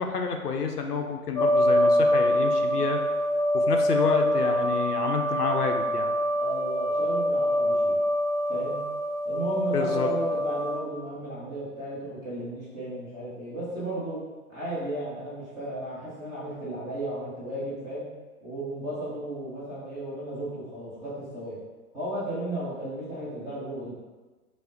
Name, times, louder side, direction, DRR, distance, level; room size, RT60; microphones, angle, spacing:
voice 1, 0.0-3.0 3.5-6.1 9.7-10.1, left 6 dB, 85° left, 4 dB, 0.6 m, -29 dB
sound 1, 1.4-10.8, equal, 35° left, 0.7 m, -25 dB
voice 2, 6.4-8.0 8.5-8.8 9.2-14.2 14.5-18.1 18.4-21.6 21.9-23.9, right 1 dB, 10° right, -10 dB, 0.6 m, -34 dB
4.9 x 2.0 x 2.5 m, 1.3 s
figure-of-eight pair, 120°, 45 cm